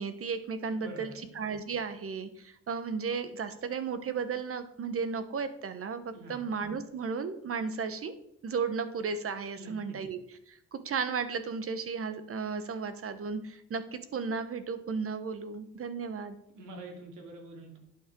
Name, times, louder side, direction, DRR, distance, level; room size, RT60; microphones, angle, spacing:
voice 1, 0.0-1.1 1.4-8.1 8.4-16.4, right 5 dB, 45° right, 11 dB, 1.2 m, -34 dB
voice 2, 0.7-1.3 6.1-6.5 9.5-10.0 16.5-17.8, right 1 dB, 80° right, 2 dB, 2.8 m, -46 dB
11.5 x 8.8 x 3.8 m, 0.74 s
cardioid pair, 90°, 30 cm